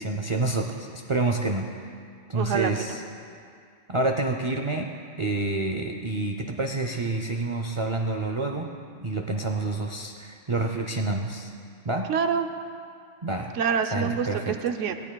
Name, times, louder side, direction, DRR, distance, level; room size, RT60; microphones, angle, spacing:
voice 1, 0.0-1.7 2.3-3.0 3.9-4.9 5.2-11.5 11.9-12.1 13.2-13.5 13.9-14.6, right 2 dB, 45° right, 4 dB, 0.4 m, -28 dB
voice 2, 2.3-2.7 12.1-12.5 13.6-14.9, right 7 dB, 85° right, 7 dB, 1.0 m, -26 dB
18.0 x 14.5 x 2.3 m, 2.3 s
omnidirectional pair, 1.2 m